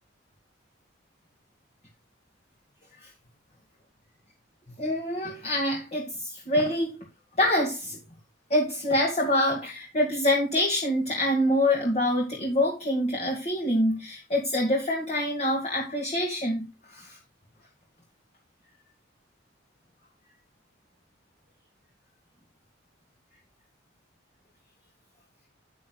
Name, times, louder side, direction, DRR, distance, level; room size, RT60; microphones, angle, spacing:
voice 1, 4.8-6.9 7.4-8.0 8.5-17.2, left 1 dB, 35° left, 2.2 m, -26 dB
9.8 x 9.2 x 2.4 m
head